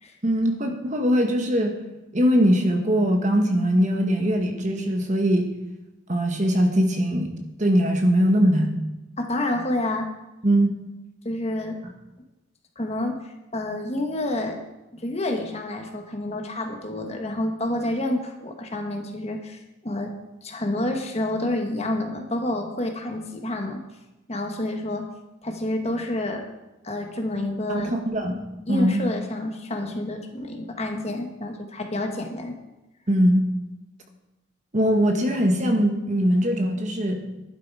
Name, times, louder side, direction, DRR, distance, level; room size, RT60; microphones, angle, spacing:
voice 1, 0.2-1.7 2.1-5.5 6.1-7.3 7.6-8.7 10.4-10.7 27.7-28.4 28.7-29.0 33.1-33.4 34.7-37.2, equal, 35° right, 3 dB, 1.4 m, -21 dB
voice 2, 9.2-10.1 11.2-11.8 12.8-14.6 14.9-20.1 20.4-23.8 24.3-25.1 25.4-26.5 26.8-27.9 28.7-32.6, left 1 dB, 30° left, 4 dB, 1.4 m, -28 dB
11.5 x 10.0 x 4.8 m, 1.0 s
head